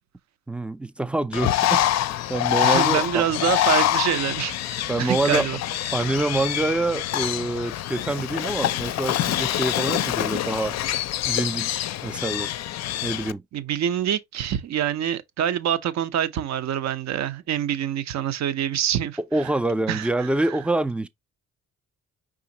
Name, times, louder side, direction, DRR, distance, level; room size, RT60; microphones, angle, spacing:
voice 1, 0.5-1.8 2.3-3.2 4.9-5.5 5.9-10.8 11.3-12.5 13.0-13.4 19.2-21.1, right 2 dB, 5° right, 0.3 m, -26 dB
Bird, 1.3-13.3, left 13 dB, 60° left, 0.4 m, -25 dB
voice 2, 2.6-5.6 13.5-19.2 19.9-20.5, right 10 dB, 65° right, 0.7 m, -26 dB
5.0 x 3.7 x 2.8 m
cardioid pair, 90°, 30 cm